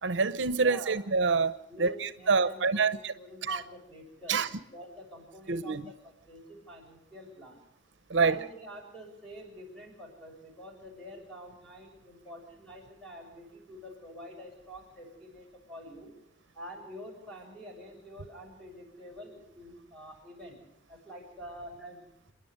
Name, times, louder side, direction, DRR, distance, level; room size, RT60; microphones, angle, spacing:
voice 1, 0.0-3.1 3.4-3.6 4.3-4.5 5.5-5.8 8.1-8.4, right 4 dB, 70° right, 0.8 m, -27 dB
voice 2, 0.6-1.0 1.7-4.5 4.7-7.6 8.1-16.1 16.5-20.6 20.9-22.0, equal, 5° left, 7.0 m, -47 dB
27.5 x 11.0 x 9.4 m
head